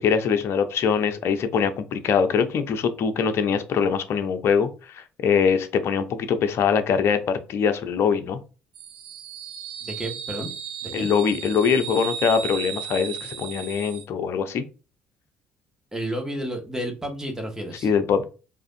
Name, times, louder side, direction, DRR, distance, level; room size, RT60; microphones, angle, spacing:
voice 1, 0.0-8.4 10.9-14.6 17.8-18.2, left 6 dB, 50° left, 0.6 m, -23 dB
sound 1, 8.7-14.0, right 8 dB, 85° right, 0.5 m, -35 dB
voice 2, 9.8-10.5 10.8-11.1 15.9-17.9, right 1 dB, 10° right, 1.5 m, -31 dB
4.8 x 2.6 x 2.6 m
hypercardioid pair, 55°, 5 cm